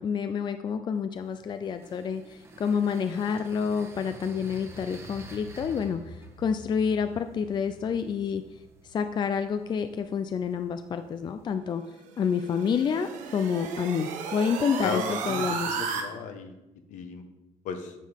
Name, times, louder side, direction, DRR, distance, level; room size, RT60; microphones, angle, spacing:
voice 1, 0.0-8.4 8.8-11.8 12.2-15.8, left 6 dB, 35° left, 9 dB, 0.5 m, -28 dB
sound 1, 1.1-11.5, right 1 dB, 20° right, 1.3 m, -49 dB
sound 2, 12.1-16.0, right 6 dB, 75° right, 1.5 m, -34 dB
voice 2, 14.8-16.5 16.9-17.3 17.6-17.9, left 5 dB, 70° left, 7 dB, 1.3 m, -35 dB
9.2 x 5.5 x 6.5 m, 0.96 s
cardioid pair, 130°, 13 cm